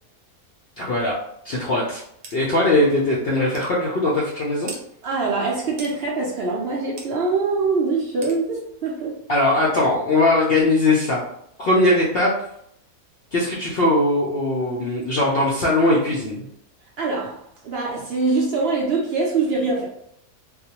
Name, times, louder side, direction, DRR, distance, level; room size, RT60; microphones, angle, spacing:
voice 1, 0.8-1.2 1.4-2.0 2.3-4.7 9.3-11.2 11.6-12.3 13.3-16.5, left 2 dB, 65° left, -5 dB, 0.6 m, -20 dB
sound 1, 2.2-2.4 2.9-3.0 3.5-3.7 4.7-4.8 5.8-6.0 7.0-7.1 8.2-8.4, right 4 dB, 90° right, 1.1 m, -37 dB
voice 2, 5.0-9.2 17.0-19.9, right 3 dB, 70° right, -2 dB, 0.6 m, -23 dB
2.3 x 2.1 x 2.8 m, 0.73 s
omnidirectional pair, 1.5 m